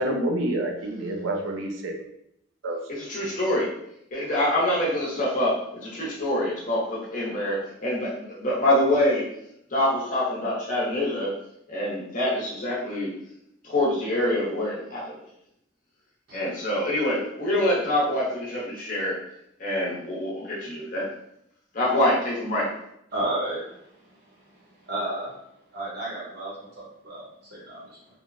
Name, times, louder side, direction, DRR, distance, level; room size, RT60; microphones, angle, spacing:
voice 1, 0.0-1.9 2.6-2.8 3.4-3.5, right 1 dB, 75° right, 1 dB, 0.5 m, -28 dB
voice 2, 2.9-3.7 4.1-9.3 9.7-11.3 11.7-13.1 13.6-15.1 16.3-19.2 19.6-21.1 21.7-22.7, left 1 dB, 40° left, -5 dB, 0.8 m, -25 dB
voice 3, 23.1-23.6 24.9-25.3 25.7-27.2 27.5-28.0, right 1 dB, 50° right, -5 dB, 0.9 m, -32 dB
3.1 x 2.1 x 2.5 m, 0.76 s
head